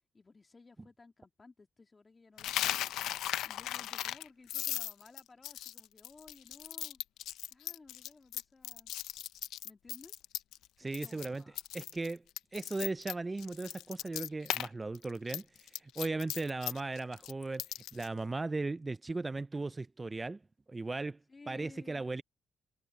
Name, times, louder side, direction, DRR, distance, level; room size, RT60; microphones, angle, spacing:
voice 1, 0.1-2.9 3.4-7.0 7.5-8.9 9.6-10.1 10.8-11.6 21.3-22.0, left 3 dB, 25° left, 2.3 m, -57 dB
Coin (dropping), 2.4-10.7 10.9-11.3 11.6-14.7 14.9-18.1, left 13 dB, 85° left, 0.6 m, -37 dB
voice 2, 10.8-11.4 11.7-12.2 12.5-17.6 17.9-20.4 20.7-21.2 21.5-22.2, right 3 dB, 20° right, 0.4 m, -37 dB
cardioid pair, 90°, 0 cm